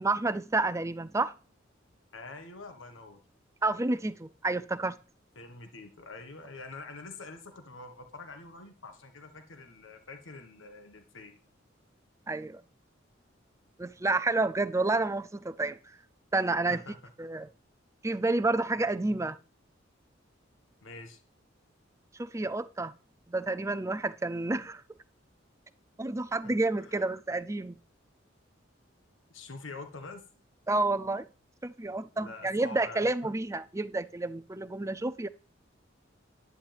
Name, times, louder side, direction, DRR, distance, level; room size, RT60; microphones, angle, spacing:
voice 1, 0.0-1.3 3.6-5.0 12.3-12.6 13.8-15.8 16.3-16.8 17.2-17.5 18.0-19.4 22.2-22.9 23.3-24.8 26.0-27.8 30.7-31.3 31.6-35.3, right 2 dB, 15° right, 0.4 m, -29 dB
voice 2, 2.1-3.2 5.3-11.4 16.7-16.9 20.8-21.2 26.4-26.5 26.8-27.1 29.3-30.2 32.1-33.0, left 3 dB, 85° left, 1.5 m, -46 dB
10.5 x 9.9 x 3.5 m
head